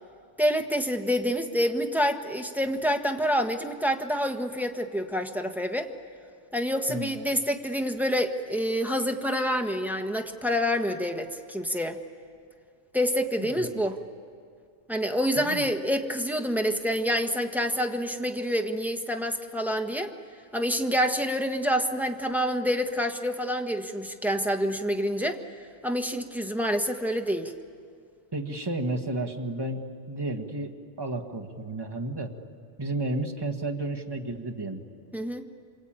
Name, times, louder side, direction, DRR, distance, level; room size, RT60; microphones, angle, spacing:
voice 1, 0.4-5.9 6.5-12.0 12.9-14.0 14.9-20.1 20.5-25.4 25.8-27.5 35.1-35.4, equal, ahead, 4 dB, 1.2 m, -27 dB
voice 2, 28.3-29.8 30.1-30.7 31.0-32.3 32.8-34.8, right 2 dB, 20° right, 3 dB, 1.6 m, -32 dB
26.5 x 25.0 x 8.9 m, 2.2 s
omnidirectional pair, 1.2 m